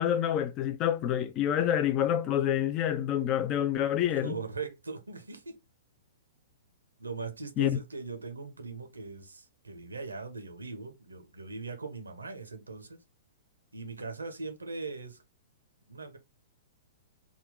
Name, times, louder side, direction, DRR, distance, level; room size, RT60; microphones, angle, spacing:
voice 1, 0.0-4.3 7.6-7.8, left 10 dB, 30° left, 0.4 m, -27 dB
voice 2, 4.1-5.6 7.0-13.0 13.7-15.2 15.9-16.2, right 4 dB, 80° right, 0.9 m, -40 dB
3.6 x 2.4 x 3.7 m
figure-of-eight pair, 110°, 0 cm